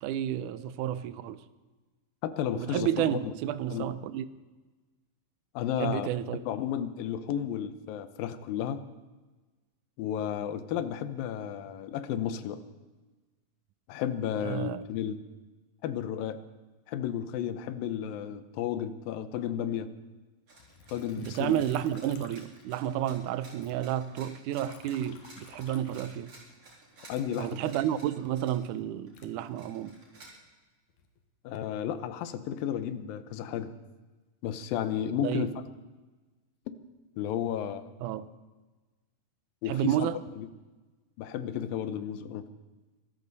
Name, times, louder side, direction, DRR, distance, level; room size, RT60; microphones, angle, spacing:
voice 1, 0.0-1.4 2.6-4.3 5.8-6.4 14.4-14.8 21.2-26.3 27.4-30.0 35.2-35.5 38.0-38.3 39.7-40.2, right 11 dB, 75° right, 14 dB, 2.0 m, -31 dB
voice 2, 2.2-3.3 3.7-3.9 5.5-6.1 6.5-8.8 10.0-12.6 13.9-15.2 15.8-16.4 16.9-19.9 20.9-21.6 27.1-27.6 31.4-33.7 34.4-35.5 37.2-37.9 39.6-40.1 40.4-40.5 41.2-42.4, left 9 dB, 80° left, 11 dB, 2.6 m, -33 dB
sound 1, 20.5-28.7 29.1-30.2, right 2 dB, 45° right, 4.8 m, -54 dB
Liquid, 20.6-23.2 23.5-26.7 27.1-30.1 30.7-31.2, left 6 dB, 65° left, 2.6 m, -56 dB
24.0 x 13.5 x 4.1 m, 1.2 s
omnidirectional pair, 4.1 m